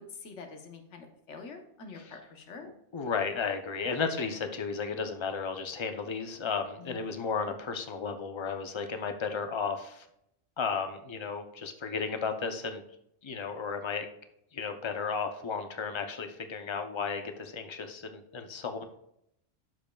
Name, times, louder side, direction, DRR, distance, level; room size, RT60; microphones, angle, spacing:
voice 1, 0.0-2.7 6.8-7.1, left 4 dB, 85° left, 4 dB, 1.3 m, -46 dB
voice 2, 2.6-10.0 10.6-12.8 13.2-14.1 14.5-18.8, left 5 dB, 30° left, 7 dB, 0.6 m, -34 dB
11.5 x 5.1 x 2.3 m, 0.76 s
omnidirectional pair, 1.2 m